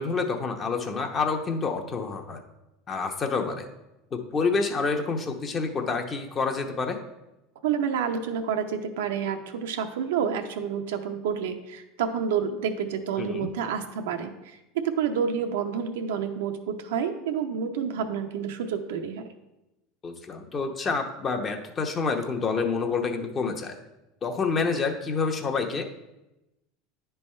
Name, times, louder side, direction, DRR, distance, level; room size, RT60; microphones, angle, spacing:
voice 1, 0.0-2.4 2.9-3.7 4.1-7.0 13.2-13.5 20.0-23.8 24.2-25.8, left 4 dB, 30° left, 4 dB, 0.9 m, -28 dB
voice 2, 7.6-19.3, right 7 dB, 85° right, 6 dB, 0.7 m, -29 dB
9.8 x 3.4 x 4.3 m, 0.95 s
supercardioid pair, 105°, 0 cm